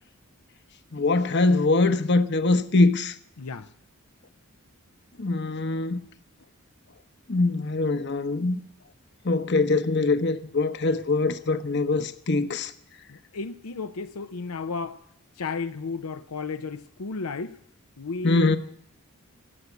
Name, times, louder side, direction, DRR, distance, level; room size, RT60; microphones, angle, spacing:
voice 1, 0.9-3.1 5.2-6.0 7.3-8.6 9.2-12.7 18.2-18.6, left 3 dB, 50° left, 1.0 m, -23 dB
voice 2, 3.4-3.7 13.1-15.0 15.4-17.6 18.0-18.6, left 4 dB, 80° left, 0.7 m, -33 dB
17.0 x 8.4 x 8.0 m
head